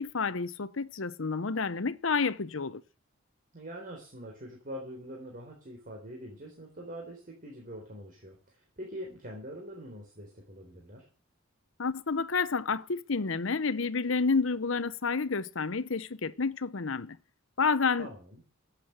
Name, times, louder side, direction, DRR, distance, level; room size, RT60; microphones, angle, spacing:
voice 1, 0.0-2.8 11.8-17.2 17.6-18.1, left 4 dB, 70° left, 0.8 m, -29 dB
voice 2, 3.5-11.1 18.0-18.4, equal, 40° right, 4.0 m, -44 dB
14.5 x 8.5 x 7.8 m
head